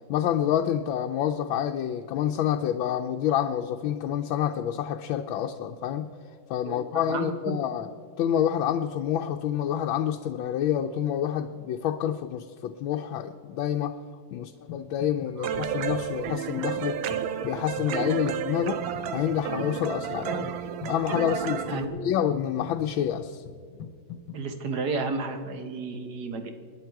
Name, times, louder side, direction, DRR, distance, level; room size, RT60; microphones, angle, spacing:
voice 1, 0.1-6.1 6.5-7.9 8.2-14.0 14.3-17.0 17.4-18.8 19.1-20.5 20.9-23.4, left 10 dB, 85° left, 4 dB, 1.4 m, -28 dB
voice 2, 7.1-7.6 15.4-15.5 21.7-22.1 24.3-26.5, right 4 dB, 60° right, 6 dB, 1.6 m, -32 dB
sound 1, 14.7-15.3 15.6-24.4, left 7 dB, 65° left, 1.5 m, -43 dB
sound 2, 15.4-21.9, right 8 dB, 80° right, 1.5 m, -31 dB
26.5 x 10.5 x 4.6 m, 2.2 s
omnidirectional pair, 2.1 m